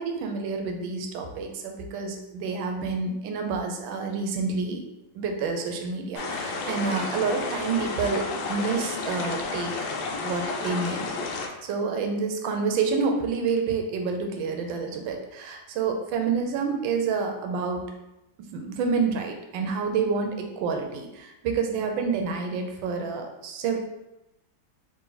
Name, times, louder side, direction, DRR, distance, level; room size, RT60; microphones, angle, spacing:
voice 1, 0.0-4.8 5.2-9.7 10.2-11.0 11.6-17.8 18.5-23.8, right 5 dB, 75° right, 3 dB, 1.3 m, -28 dB
sound 1, 6.1-11.5, left 3 dB, 75° left, 1.2 m, -31 dB
3.8 x 2.7 x 4.0 m, 0.92 s
omnidirectional pair, 2.2 m